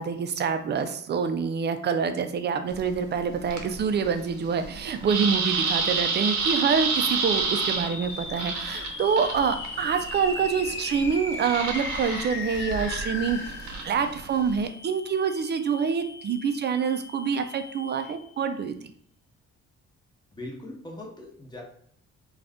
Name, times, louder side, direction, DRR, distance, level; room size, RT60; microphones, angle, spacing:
voice 1, 0.0-13.6 13.8-18.7, right 6 dB, 35° right, 8 dB, 0.4 m, -26 dB
sound 1, 2.7-14.7, right 4 dB, 65° right, 0.7 m, -31 dB
sound 2, 7.0-18.4, left 4 dB, 40° left, 0.6 m, -38 dB
voice 2, 20.3-21.6, left 1 dB, 15° left, -1 dB, 0.9 m, -40 dB
2.5 x 2.4 x 3.4 m, 0.64 s
cardioid pair, 90°, 30 cm